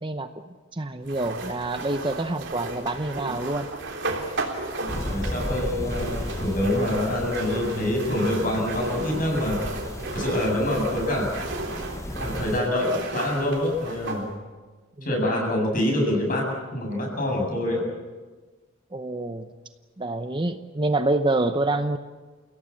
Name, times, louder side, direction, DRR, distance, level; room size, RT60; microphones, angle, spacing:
voice 1, 0.7-3.7 15.3-15.4 18.9-19.4 20.0-22.0, right 2 dB, 25° right, 8 dB, 0.8 m, -26 dB
sound 1, 1.1-14.3, right 2 dB, 55° right, 3.5 m, -34 dB
sound 2, 4.9-12.6, left 1 dB, 15° left, 0.7 m, -35 dB
voice 2, 5.0-9.6 10.1-11.3 12.1-14.3 15.0-17.8, left 1 dB, 40° left, 0 dB, 7.7 m, -26 dB
30.0 x 17.0 x 8.6 m, 1.3 s
head